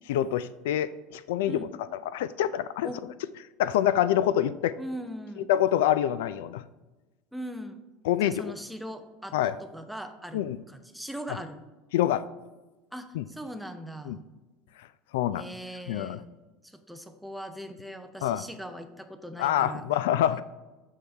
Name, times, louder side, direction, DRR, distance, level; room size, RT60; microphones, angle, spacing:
voice 1, 0.1-1.6 2.1-2.9 3.6-4.8 5.5-6.6 8.0-8.5 9.3-9.5 10.3-10.6 11.9-12.2 13.1-13.2 14.1-14.2 15.1-15.5 15.9-16.2 18.2-18.4 19.4-20.4, left 11 dB, 90° left, 16 dB, 0.3 m, -26 dB
voice 2, 4.8-5.5 7.3-7.8 8.2-10.4 10.7-11.6 12.9-14.2 15.4-16.3 16.6-19.8, equal, ahead, 7 dB, 0.4 m, -40 dB
7.0 x 6.4 x 3.3 m, 1.2 s
cardioid pair, 170°, 0 cm